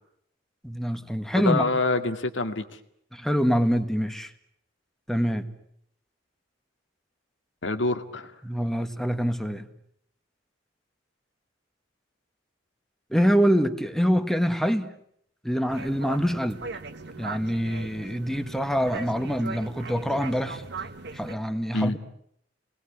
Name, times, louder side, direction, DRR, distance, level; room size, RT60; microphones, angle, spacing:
voice 1, 0.6-1.6 3.1-4.3 5.1-5.5 8.4-9.7 13.1-14.9 15.4-16.6 17.2-20.7 21.1-22.0, equal, ahead, 8 dB, 1.7 m, -25 dB
voice 2, 1.3-2.6 7.6-8.3 21.7-22.0, left 2 dB, 80° left, 8 dB, 2.2 m, -26 dB
sound 1, 15.7-21.3, right 3 dB, 65° right, 1.6 m, -39 dB
28.5 x 21.0 x 9.9 m, 0.72 s
head